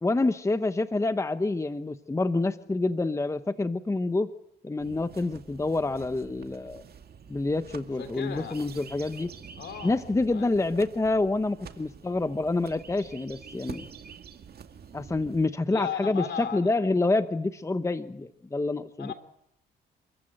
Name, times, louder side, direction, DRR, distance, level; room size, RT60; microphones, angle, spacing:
voice 1, 0.0-4.3 4.6-6.8 7.3-9.3 9.8-13.9 14.9-19.1, left 2 dB, 15° left, 11 dB, 0.9 m, -27 dB
sound 1, 4.8-15.5, right 7 dB, 50° right, 2.2 m, -47 dB
voice 2, 8.0-8.6 9.6-10.0 10.3-10.6 15.7-16.7 19.0-19.1, left 8 dB, 65° left, 10 dB, 3.3 m, -35 dB
28.0 x 14.5 x 9.0 m, 0.79 s
cardioid pair, 90°, 20 cm